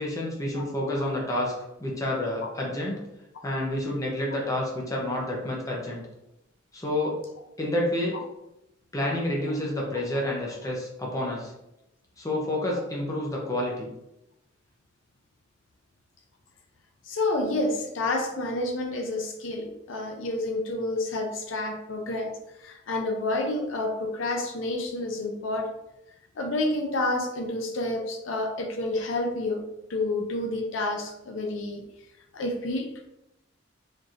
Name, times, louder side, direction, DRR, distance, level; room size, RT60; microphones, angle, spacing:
voice 1, 0.0-1.5 1.8-3.1 3.4-6.0 6.7-7.2 7.6-8.2 8.9-11.5 12.2-13.9, left 1 dB, 15° left, -2 dB, 0.8 m, -29 dB
voice 2, 17.1-25.7 26.4-31.8 32.3-33.1, left 2 dB, 75° left, 3 dB, 0.6 m, -29 dB
4.2 x 3.2 x 2.5 m, 0.87 s
head